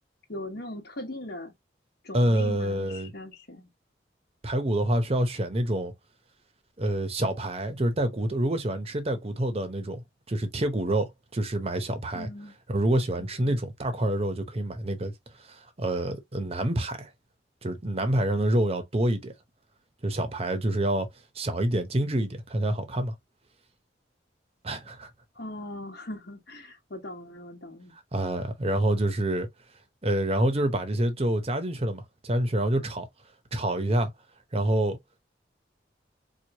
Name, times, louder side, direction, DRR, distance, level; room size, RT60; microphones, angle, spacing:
voice 1, 0.3-1.5 2.0-3.7 12.1-12.5 13.4-13.6 25.3-27.9, left 1 dB, 65° left, 1.2 m, -40 dB
voice 2, 2.1-3.1 4.4-5.9 6.8-12.3 12.7-15.1 15.4-17.1 17.6-19.3 20.0-21.1 21.3-23.1 24.6-25.1 28.1-29.5 30.0-33.1 33.5-34.1 34.5-35.0, right 1 dB, 35° right, 0.8 m, -27 dB
4.7 x 2.3 x 2.8 m
head